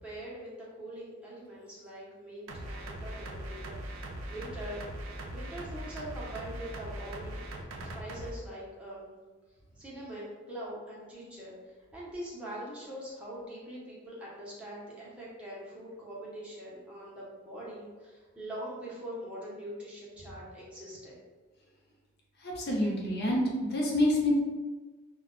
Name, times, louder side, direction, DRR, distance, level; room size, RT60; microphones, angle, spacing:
voice 1, 0.0-0.5 0.8-3.8 4.3-4.8 5.3-7.4 8.0-9.1 9.8-11.5 11.9-21.2, right 1 dB, 5° right, -7 dB, 0.7 m, -43 dB
sound 1, 2.5-8.3, right 1 dB, 65° right, 0.4 m, -40 dB
voice 2, 22.4-23.4 23.7-24.4, left 1 dB, 50° left, -2 dB, 0.6 m, -27 dB
2.2 x 2.2 x 3.6 m, 1.3 s
head